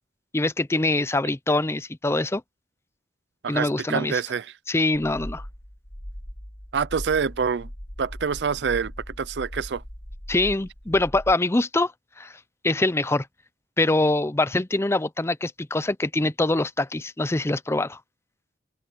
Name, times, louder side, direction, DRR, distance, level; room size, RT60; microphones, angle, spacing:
voice 1, 0.3-2.4 3.5-4.2 4.7-5.4 10.3-11.9 12.2-12.3 12.6-13.3 13.8-18.0, left 2 dB, 15° left, 0.5 m, -24 dB
voice 2, 3.4-4.5 6.7-7.7 8.0-8.9 9.2-9.8, right 6 dB, 70° right, 0.5 m, -26 dB
sound 1, 4.9-11.3, equal, 35° left, 2.6 m, -39 dB
head